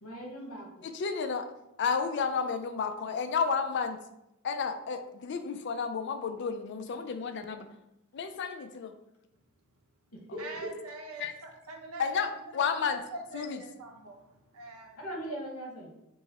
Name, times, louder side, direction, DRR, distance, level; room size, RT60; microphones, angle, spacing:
voice 1, 0.0-0.8 10.1-10.8 11.2-11.3 15.0-15.9, right 1 dB, 85° left, 0 dB, 1.1 m, -40 dB
voice 2, 0.8-1.4 1.8-4.0 4.4-7.6 8.1-8.9 11.2-11.3 12.0-13.0 13.3-13.6, left 5 dB, 55° left, 7 dB, 0.4 m, -31 dB
voice 3, 10.4-12.2 12.6-14.2 14.5-15.0, right 2 dB, 85° right, 2 dB, 0.8 m, -44 dB
4.5 x 2.1 x 4.1 m, 0.87 s
head